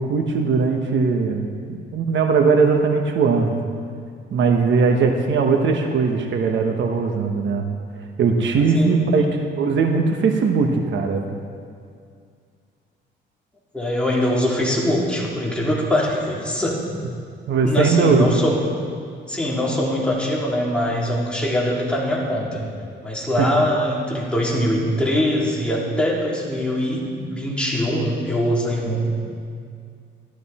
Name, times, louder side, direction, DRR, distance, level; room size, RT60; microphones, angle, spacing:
voice 1, 0.0-3.5 4.3-7.6 8.2-9.2 9.6-11.3 17.5-18.3 23.4-23.5, right 4 dB, 70° right, 4 dB, 1.2 m, -19 dB
voice 2, 8.7-9.0 13.7-16.8 17.6-18.6 19.3-22.6 23.0-27.0 27.3-29.1, left 1 dB, 5° left, -5 dB, 3.4 m, -22 dB
14.5 x 13.5 x 4.3 m, 2.3 s
cardioid pair, 90°, 20 cm